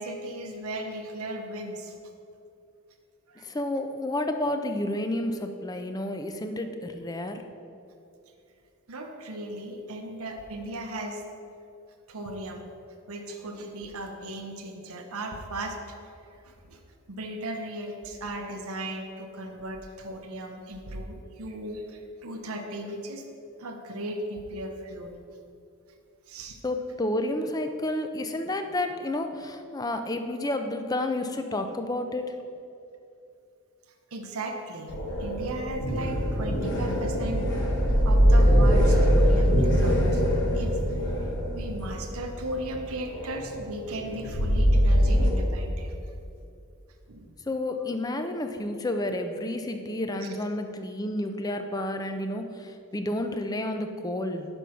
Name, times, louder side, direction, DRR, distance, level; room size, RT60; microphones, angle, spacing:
voice 1, 0.0-1.9 3.3-3.5 5.7-5.8 8.9-11.2 12.1-12.7 13.1-16.8 17.1-23.2 23.6-25.1 26.3-26.6 34.1-34.9 35.2-37.5 37.8-40.2 40.5-41.3 41.5-45.9 47.1-47.3 50.2-50.4, right 1 dB, 75° right, 3 dB, 0.7 m, -37 dB
voice 2, 3.4-7.4 26.6-32.4 47.5-54.5, left 1 dB, 15° left, 7 dB, 0.4 m, -30 dB
sound 1, 34.9-45.3, equal, 55° left, 1.3 m, -23 dB
5.7 x 5.3 x 6.2 m, 2.6 s
head